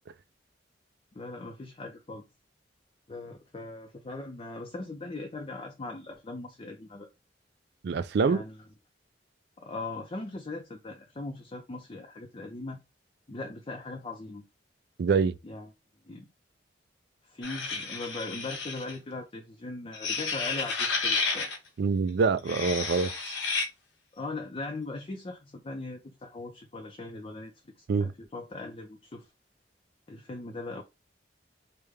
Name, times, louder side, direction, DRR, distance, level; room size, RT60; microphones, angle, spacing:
voice 1, 1.1-2.2 3.1-7.1 8.2-8.6 9.6-12.8 13.3-14.4 15.4-15.7 16.1-16.3 17.2-21.5 24.2-29.3 30.1-30.8, left 2 dB, 30° left, 0.5 m, -39 dB
voice 2, 7.8-8.4 15.0-15.3 21.8-23.4 27.9-28.1, right 5 dB, 60° right, 0.3 m, -25 dB
sound 1, 17.4-19.0 19.9-21.6 22.4-23.7, left 4 dB, 85° left, 1.0 m, -31 dB
3.3 x 2.2 x 3.5 m
head